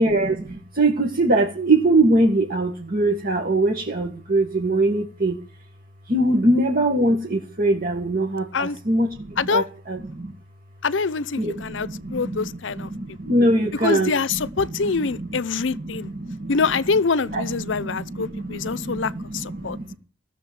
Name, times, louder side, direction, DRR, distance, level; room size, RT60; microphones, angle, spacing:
voice 1, 0.0-5.4 6.1-10.3 11.4-14.4 14.7-15.3 15.7-16.5 17.3-19.9, right 2 dB, 50° right, 1.9 m, -23 dB
voice 2, 10.8-13.2 13.8-16.1 16.5-19.8, left 4 dB, 75° left, 0.7 m, -25 dB
15.5 x 6.8 x 9.5 m
head